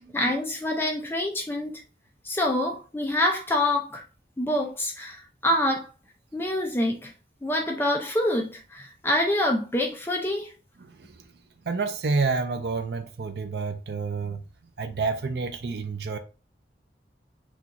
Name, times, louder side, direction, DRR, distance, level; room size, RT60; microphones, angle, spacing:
voice 1, 0.1-1.8 2.2-4.0 4.4-5.9 6.3-7.1 7.4-10.5, left 1 dB, 10° left, 0.5 m, -26 dB
voice 2, 11.7-14.4 14.8-16.2, right 4 dB, 65° right, 0.5 m, -29 dB
6.1 x 2.4 x 2.8 m
head